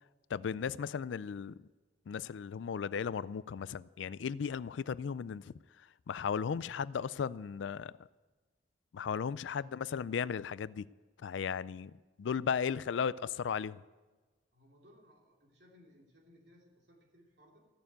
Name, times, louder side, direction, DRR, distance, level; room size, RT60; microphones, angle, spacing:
voice 1, 0.3-1.7 2.1-5.5 6.1-7.9 8.9-10.8 11.2-11.9 12.2-13.1 13.4-13.8, left 6 dB, 75° left, 0.4 m, -35 dB
voice 2, 14.5-17.7, equal, 60° right, 2.9 m, -62 dB
14.5 x 6.9 x 8.9 m
head